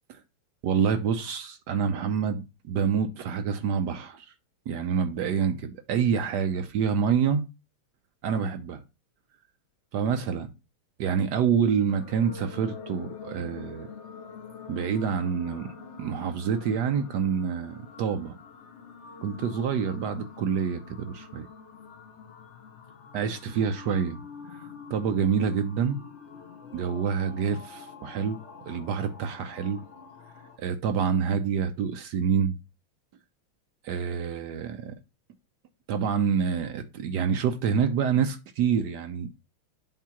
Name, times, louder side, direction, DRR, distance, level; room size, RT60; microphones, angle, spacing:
voice 1, 0.6-4.3 4.7-7.5 8.2-8.8 9.9-10.5 11.0-13.9 14.7-18.3 19.2-21.5 23.1-24.2 24.5-24.6 24.9-26.0 26.7-28.4 28.6-29.8 30.6-32.6 33.8-34.9 35.9-39.3, right 7 dB, 75° right, 1.0 m, -27 dB
sound 1, 11.9-30.6, left 5 dB, 80° left, 0.6 m, -46 dB
7.3 x 2.8 x 5.7 m
omnidirectional pair, 2.4 m